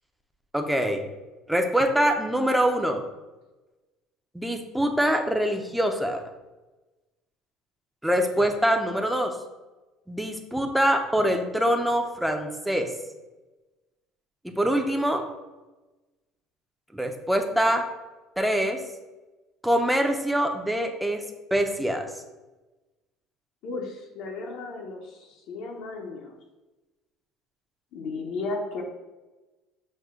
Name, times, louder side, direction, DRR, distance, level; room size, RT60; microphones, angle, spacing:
voice 1, 0.5-1.0 1.5-3.0 4.3-6.2 8.0-9.3 10.1-12.9 14.4-15.3 16.9-17.9 18.4-18.8 19.6-21.2 21.5-22.1, equal, 5° right, 4 dB, 0.6 m, -24 dB
voice 2, 23.6-26.4 27.9-28.8, left 3 dB, 70° left, 0 dB, 0.8 m, -34 dB
6.4 x 2.1 x 3.6 m, 1.1 s
supercardioid pair, 105°, 0 cm